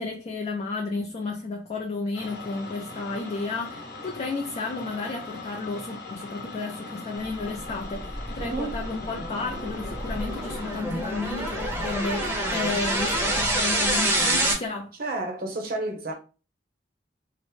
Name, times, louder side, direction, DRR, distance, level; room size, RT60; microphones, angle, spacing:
voice 1, 0.0-14.9, left 3 dB, 35° left, 0.4 m, -32 dB
sound 1, 2.1-10.8, left 3 dB, 60° left, 0.8 m, -40 dB
sound 2, 7.6-14.5, right 1 dB, 15° right, 0.6 m, -27 dB
voice 2, 8.4-8.8 15.0-16.1, right 2 dB, 55° right, 0.7 m, -31 dB
2.8 x 2.0 x 3.2 m
head